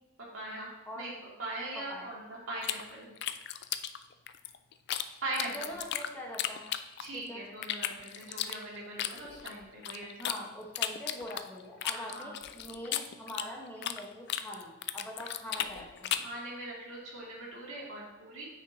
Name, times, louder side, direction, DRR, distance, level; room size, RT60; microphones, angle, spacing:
voice 1, 0.2-0.7 1.0-1.1 1.4-3.1 5.2-5.7 7.0-10.5 11.9-12.3 16.1-18.5, right 2 dB, 90° right, -4 dB, 2.5 m, -41 dB
sound 1, 2.6-5.0 5.3-7.2 7.6-10.4 10.7-14.0 14.3-16.4, left 11 dB, 55° left, 0.4 m, -35 dB
voice 2, 5.3-6.6 7.1-7.4 10.2-16.2, equal, 10° left, -3 dB, 1.2 m, -43 dB
9.2 x 5.7 x 2.8 m, 1.1 s
head